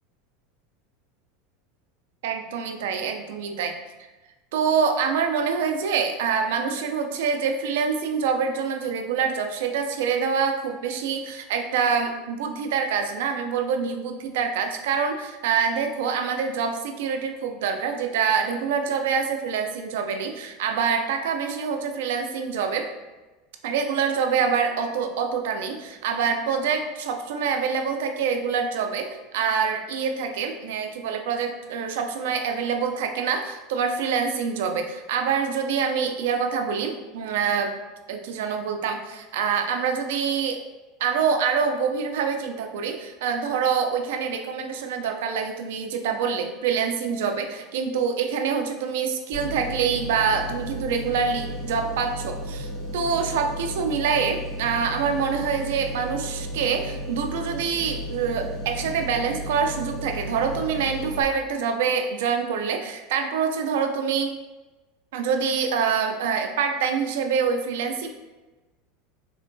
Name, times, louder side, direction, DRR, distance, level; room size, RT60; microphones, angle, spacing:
voice 1, 2.2-3.8 4.5-22.9 23.6-37.7 38.1-40.6 41.0-64.4 65.1-68.1, right 6 dB, 70° right, 5 dB, 0.3 m, -26 dB
sound 1, 49.3-61.2, equal, 5° right, 0.5 m, -34 dB
3.6 x 2.2 x 2.5 m, 1.2 s
supercardioid pair, 180°, 0 cm